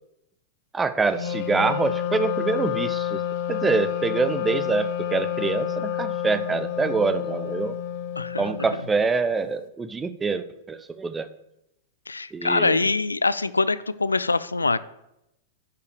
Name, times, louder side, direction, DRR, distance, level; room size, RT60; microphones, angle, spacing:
voice 1, 0.7-3.2 3.5-7.8 8.4-11.3 12.3-12.9, right 4 dB, 15° right, 12 dB, 0.7 m, -25 dB
Wind instrument woodwind instrument, 1.1-8.9, left 10 dB, 45° left, 1.1 m, -29 dB
voice 2, 8.2-8.5 12.1-14.8, left 3 dB, 85° left, 16 dB, 0.4 m, -24 dB
10.5 x 5.5 x 6.7 m, 0.86 s
figure-of-eight pair, 100°, 0 cm